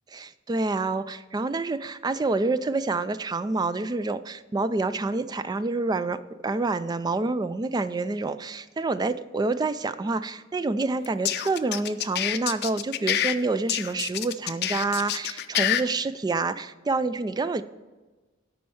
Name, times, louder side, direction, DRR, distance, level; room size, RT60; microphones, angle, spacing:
voice 1, 0.1-17.6, right 3 dB, 20° right, 13 dB, 0.3 m, -27 dB
sound 1, 11.0-13.3 13.7-15.8, left 11 dB, 50° left, 0.5 m, -27 dB
11.0 x 4.4 x 7.8 m, 1.2 s
head